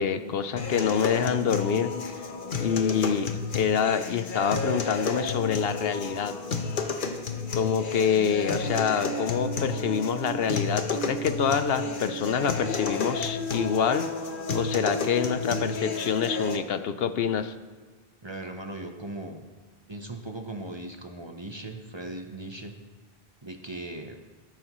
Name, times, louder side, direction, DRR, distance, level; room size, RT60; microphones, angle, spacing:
voice 1, 0.0-2.2 2.5-6.4 7.5-14.1 14.5-17.5, left 7 dB, 70° left, 11 dB, 0.8 m, -26 dB
sound 1, 0.6-16.6, left 3 dB, 55° left, 1.1 m, -31 dB
voice 2, 18.2-19.4 19.9-22.8 23.4-24.2, right 2 dB, 30° right, 4 dB, 0.8 m, -38 dB
13.5 x 12.5 x 3.1 m, 1.4 s
omnidirectional pair, 1.1 m